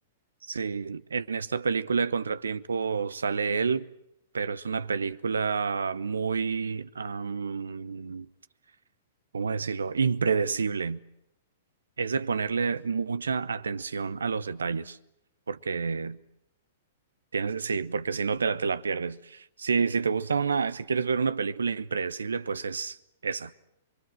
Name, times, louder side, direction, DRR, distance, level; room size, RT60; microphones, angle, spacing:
voice 1, 0.5-3.9 4.3-8.3 9.3-11.0 12.0-15.0 15.5-16.2 17.3-23.0 23.2-23.5, right 5 dB, 80° right, 0.9 m, -29 dB
28.0 x 23.0 x 7.8 m
hypercardioid pair, 110°, 0 cm